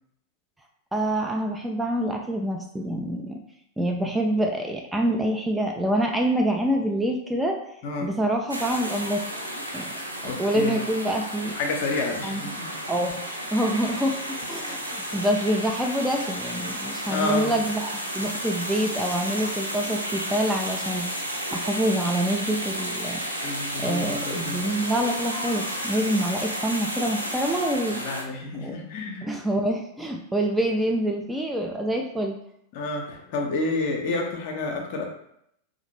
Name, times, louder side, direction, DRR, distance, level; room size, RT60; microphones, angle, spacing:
voice 1, 0.9-3.4 3.8-7.6 8.0-9.2 9.7-9.9 10.2-11.5 12.2-12.6 12.9-21.1 21.5-23.2 23.8-28.0 28.6-28.8 29.2-32.4, right 1 dB, 5° right, 2 dB, 0.3 m, -26 dB
sound 1, 8.5-28.2, equal, 85° right, 0.4 m, -32 dB
voice 2, 10.2-10.8 11.5-12.7 17.1-17.5 23.4-24.7 27.9-29.3 32.7-35.0, left 3 dB, 50° left, 2 dB, 0.6 m, -29 dB
2.7 x 2.5 x 2.9 m, 0.75 s
figure-of-eight pair, 90°, 0 cm